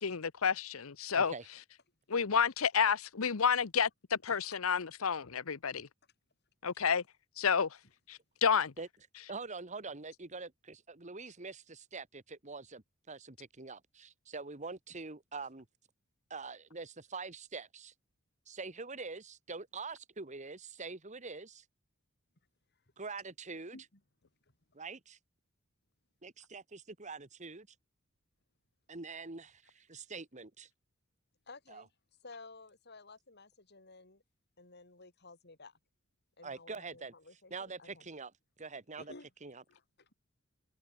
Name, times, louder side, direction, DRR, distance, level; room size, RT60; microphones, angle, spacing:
voice 1, 0.0-1.3 2.1-5.9 6.6-7.0 7.4-7.8 8.1-8.7, left 6 dB, 80° left, 0.9 m, -30 dB
voice 2, 1.1-1.5 8.8-8.9 9.3-15.7 16.3-17.9 18.5-21.6 23.0-23.9 24.7-25.2 26.2-27.7 28.9-30.7 31.7-31.8 36.4-37.1 37.5-38.3 38.6-39.1 39.4-39.6, right 4 dB, 35° right, 1.7 m, -45 dB
voice 3, 31.5-31.9 32.2-34.2 34.6-35.8 36.4-38.1 39.0-39.3 39.7-40.1, left 3 dB, 50° left, 4.7 m, -54 dB
head